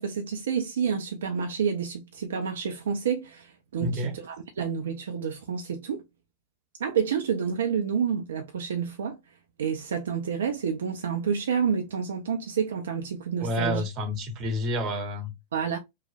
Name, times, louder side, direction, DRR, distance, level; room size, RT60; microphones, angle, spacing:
voice 1, 0.0-6.0 6.8-9.2 9.6-13.8 15.5-15.8, right 7 dB, 65° right, 0.4 m, -29 dB
voice 2, 3.8-4.2 13.4-15.3, left 1 dB, 35° right, 0.8 m, -29 dB
3.0 x 2.1 x 2.5 m
figure-of-eight pair, 90°, 0 cm